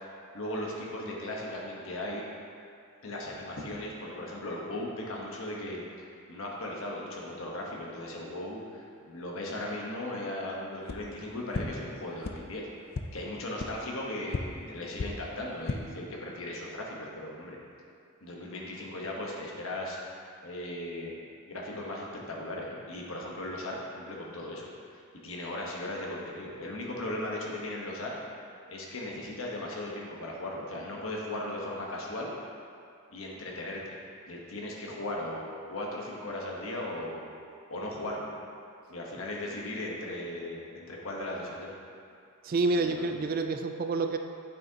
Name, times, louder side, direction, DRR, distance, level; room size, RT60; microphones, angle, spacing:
voice 1, 0.3-2.2 3.0-12.7 13.1-17.6 18.2-20.0 20.4-21.2 21.5-28.1 28.7-32.3 33.1-34.0 34.3-37.3 37.7-38.3 38.9-41.7 42.7-43.3, left 1 dB, 70° left, -2 dB, 1.1 m, -37 dB
sound 1, 10.8-11.0 11.5-11.6 12.2-12.3 12.9-13.0 13.6-13.7 14.3-14.4 14.9-15.1 15.5-15.8, left 4 dB, 45° left, 0.4 m, -33 dB
voice 2, 42.4-44.2, right 3 dB, 40° right, 6 dB, 0.3 m, -28 dB
8.3 x 6.2 x 2.8 m, 2.4 s
head